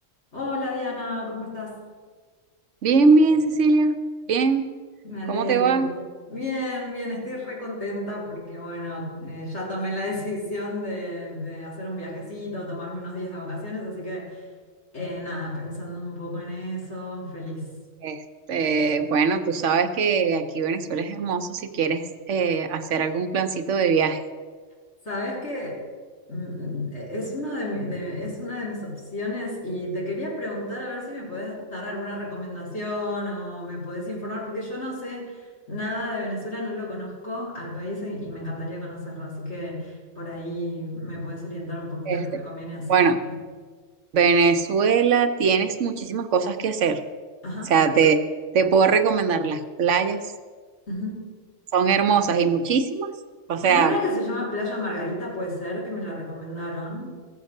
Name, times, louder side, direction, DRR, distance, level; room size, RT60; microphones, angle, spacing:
voice 1, 0.3-1.8 5.0-6.0 6.3-14.4 14.9-17.7 25.0-25.8 26.3-43.3 47.4-47.8 50.9-51.2 53.7-57.1, left 1 dB, 60° left, -5 dB, 4.2 m, -32 dB
voice 2, 2.8-4.0 4.3-4.7 5.3-6.0 18.0-18.2 18.5-24.2 42.1-42.4 42.9-43.2 44.1-47.0 47.7-48.2 48.5-50.2 51.7-53.1 53.5-53.9, right 5 dB, 70° right, 9 dB, 1.1 m, -21 dB
15.5 x 7.4 x 6.5 m, 1.5 s
omnidirectional pair, 1.3 m